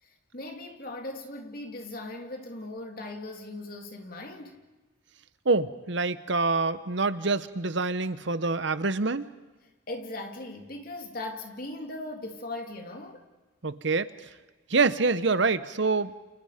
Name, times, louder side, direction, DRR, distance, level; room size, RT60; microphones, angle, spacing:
voice 1, 0.0-4.6 9.9-13.2, left 2 dB, 45° left, 3 dB, 3.2 m, -39 dB
voice 2, 5.4-9.3 13.6-14.1 14.7-16.1, right 3 dB, 65° right, 13 dB, 1.0 m, -26 dB
29.5 x 29.0 x 5.1 m, 1.2 s
head